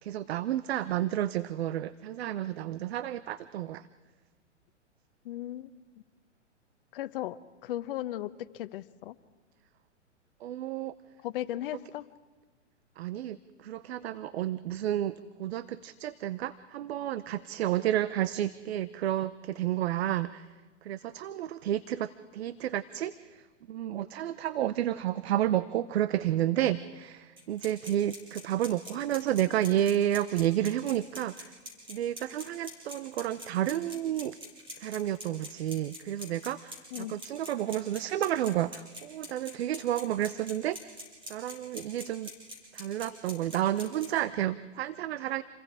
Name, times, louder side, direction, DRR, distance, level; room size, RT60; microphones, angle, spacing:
voice 1, 0.0-3.9 10.4-10.9 13.0-20.5 20.8-31.5 31.9-34.4 34.8-41.0 41.3-42.3 42.7-45.4, right 12 dB, 60° right, 16 dB, 0.8 m, -31 dB
voice 2, 5.2-5.7 6.9-9.1 11.2-12.0 36.9-37.2, left 13 dB, 45° left, 14 dB, 1.0 m, -36 dB
sound 1, 27.4-44.1, equal, 15° right, 6.4 m, -43 dB
28.5 x 22.5 x 4.9 m, 1.3 s
hypercardioid pair, 135°, 36 cm